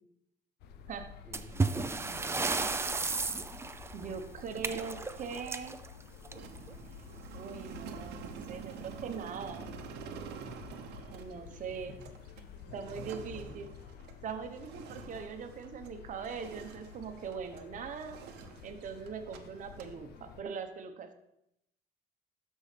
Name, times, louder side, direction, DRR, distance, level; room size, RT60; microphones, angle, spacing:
sound 1, 0.6-20.4, left 7 dB, 75° left, 0.7 m, -51 dB
voice 1, 1.3-2.6 10.5-11.0 11.3-12.1 12.7-13.6, right 1 dB, 5° left, 0 dB, 1.9 m, -53 dB
sound 2, 1.3-6.7 8.0-8.1 8.4-8.5 9.2-9.3 10.0-10.2, right 3 dB, 15° right, 0.5 m, -34 dB
voice 2, 3.9-5.8 7.3-9.7 11.1-11.9 12.7-13.7 14.2-18.2 18.6-21.1, right 6 dB, 50° right, 7 dB, 1.0 m, -41 dB
sound 3, 6.3-16.0 16.2-17.7 18.0-19.4 19.6-19.9, right 8 dB, 85° right, 0.9 m, -48 dB
12.5 x 5.5 x 3.3 m, 0.82 s
cardioid pair, 110°, 17 cm